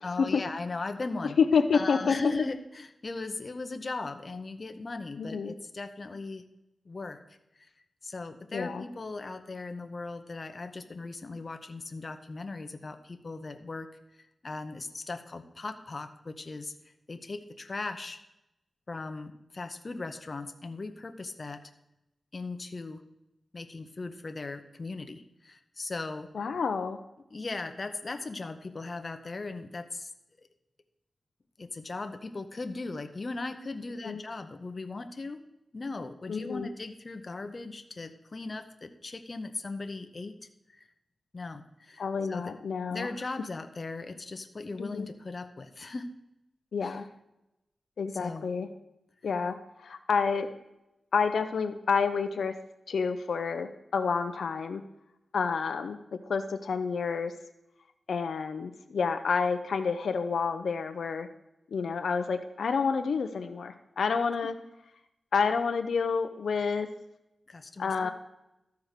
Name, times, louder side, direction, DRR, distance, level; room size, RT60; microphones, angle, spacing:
voice 1, 0.0-1.4 1.7-6.5 6.9-7.2 8.0-13.9 14.4-16.7 17.1-18.2 18.9-21.6 22.3-23.0 23.5-26.3 27.3-30.1 30.4-30.5 31.6-35.4 35.7-40.3 40.7-40.8 41.3-42.5 42.9-46.1 46.8-47.0 48.2-48.5 67.5-68.1, left 3 dB, 40° left, 7 dB, 0.8 m, -38 dB
voice 2, 1.2-2.2 5.2-5.5 8.5-8.8 26.3-27.0 34.0-34.2 36.3-36.7 42.0-43.1 44.8-45.1 46.7-47.0 48.0-48.7 49.2-50.5 51.1-52.5 52.9-54.8 55.3-56.0 56.3-57.4 58.1-61.3 61.7-64.5 65.3-66.9 67.8-68.1, left 5 dB, 85° left, 7 dB, 0.6 m, -29 dB
13.0 x 4.7 x 6.6 m, 0.88 s
wide cardioid pair, 90°, 0 cm